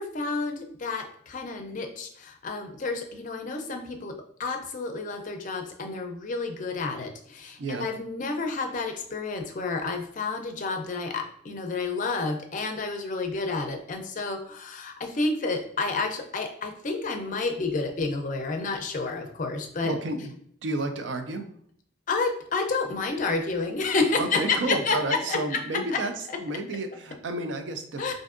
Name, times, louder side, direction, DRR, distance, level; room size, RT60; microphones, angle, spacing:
voice 1, 0.0-4.1 4.4-19.9 22.1-25.6 28.0-28.1, left 3 dB, 40° left, 4 dB, 0.4 m, -30 dB
voice 2, 19.8-20.3 20.6-21.5 24.2-28.1, right 2 dB, 65° right, 7 dB, 0.4 m, -31 dB
4.4 x 2.6 x 2.4 m, 0.63 s
head